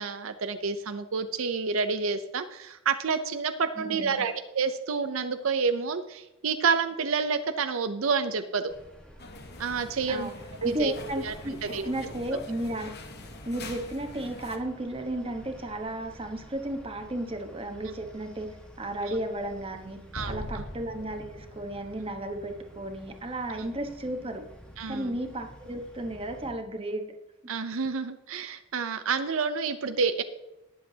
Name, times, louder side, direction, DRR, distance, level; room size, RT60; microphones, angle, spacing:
voice 1, 0.0-8.6 9.6-10.3 10.6-11.3 11.6-11.9 19.0-19.1 20.1-20.6 24.8-25.1 27.5-30.2, right 5 dB, 75° right, 9 dB, 0.6 m, -29 dB
voice 2, 3.8-4.2 10.1-10.3 10.6-13.0 13.5-20.0 20.3-24.5 24.9-27.1, right 1 dB, 25° right, 5 dB, 1.1 m, -34 dB
sound 1, 8.7-26.5, equal, 5° left, 1.5 m, -51 dB
sound 2, 9.2-14.6, left 3 dB, 50° left, 1.2 m, -44 dB
Explosion, 20.1-23.4, left 1 dB, 80° left, 1.3 m, -42 dB
19.0 x 7.5 x 2.8 m, 0.96 s
head